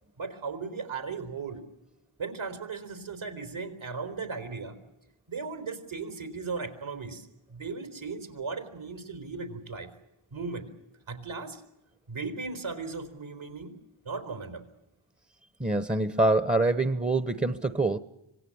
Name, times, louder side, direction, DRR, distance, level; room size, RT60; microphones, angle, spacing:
voice 1, 0.2-1.6 2.2-4.8 5.3-9.9 10.3-10.7 11.1-11.6 12.1-13.7 14.0-14.6, right 4 dB, 70° right, 7 dB, 4.1 m, -37 dB
voice 2, 15.6-18.0, right 2 dB, 15° right, 13 dB, 1.1 m, -25 dB
26.0 x 18.5 x 8.7 m, 0.93 s
cardioid pair, 45°, 50 cm